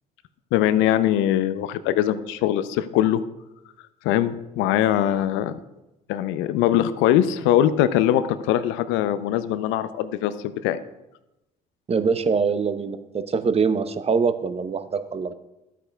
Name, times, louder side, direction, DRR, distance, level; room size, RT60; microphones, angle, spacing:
voice 1, 0.5-3.2 4.0-5.6 6.1-10.3 10.6-10.8, left 11 dB, 70° left, 13 dB, 0.5 m, -21 dB
voice 2, 11.9-15.3, right 5 dB, 30° right, 11 dB, 0.7 m, -23 dB
13.0 x 8.2 x 2.3 m, 0.95 s
hypercardioid pair, 55°, 21 cm